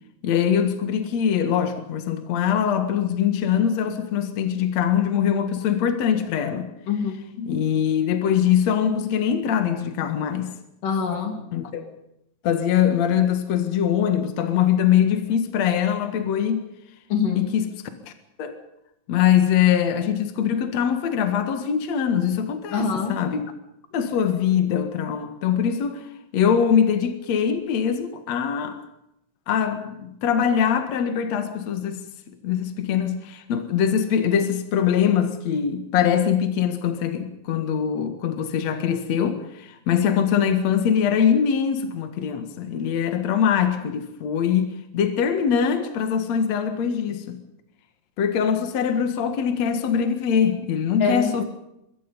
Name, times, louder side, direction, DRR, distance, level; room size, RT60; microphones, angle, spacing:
voice 1, 0.2-6.7 7.5-10.5 11.5-11.9 12.4-16.7 17.3-17.7 18.0-18.1 18.4-18.6 19.1-23.5 23.9-28.8 29.5-32.0 32.4-47.4 48.2-51.4, left 8 dB, 60° left, 2.8 m, -22 dB
voice 2, 6.9-7.5 10.8-11.3 17.1-17.5 22.7-23.2 51.0-51.5, left 6 dB, 85° left, 4.7 m, -25 dB
26.0 x 22.0 x 5.4 m
omnidirectional pair, 3.7 m